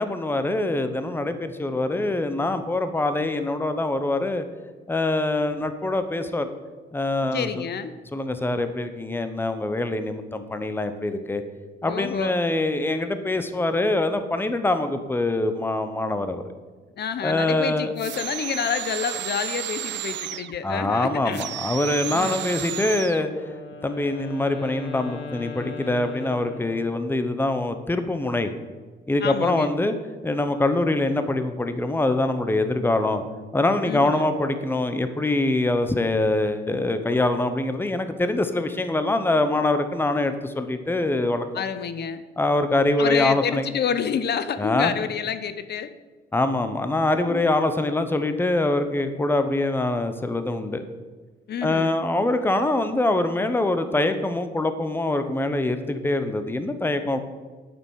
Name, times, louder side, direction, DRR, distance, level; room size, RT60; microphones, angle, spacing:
voice 1, 0.0-4.5 4.9-6.5 6.9-7.5 8.1-11.4 11.8-16.4 17.2-17.9 20.6-23.3 23.8-28.5 29.1-29.9 30.2-33.2 33.5-41.4 42.4-43.6 44.6-44.9 46.3-50.8 51.6-57.2, left 2 dB, 10° left, 9 dB, 0.9 m, -24 dB
voice 2, 7.3-7.9 10.0-10.1 11.8-12.3 17.0-21.6 22.1-22.4 29.2-29.7 33.8-34.3 41.5-42.2 43.0-45.9 47.3-47.4 51.5-51.9, left 7 dB, 55° left, 12 dB, 0.7 m, -28 dB
sound 1, 18.0-20.6 21.3-23.2, right 13 dB, 65° right, 0.4 m, -32 dB
Wind instrument woodwind instrument, 23.1-27.3, left 5 dB, 85° left, 1.7 m, -39 dB
8.7 x 7.0 x 6.4 m, 1.3 s
cardioid pair, 90°, 20 cm